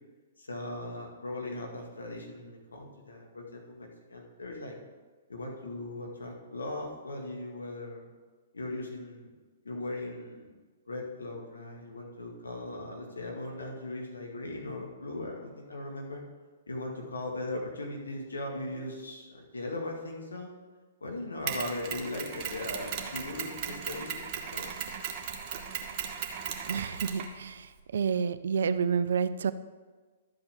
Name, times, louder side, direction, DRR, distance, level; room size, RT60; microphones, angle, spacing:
voice 1, 0.4-4.7 5.3-8.1 8.5-9.3 9.6-10.5 10.9-16.2 16.7-20.5 21.0-24.9, left 2 dB, 80° left, 0 dB, 2.1 m, -39 dB
Mechanisms, 21.5-27.8, right 7 dB, 40° right, 1.2 m, -37 dB
voice 2, 26.7-29.5, right 6 dB, 65° right, 15 dB, 0.4 m, -29 dB
12.5 x 7.8 x 3.6 m, 1.4 s
figure-of-eight pair, 115°, 0 cm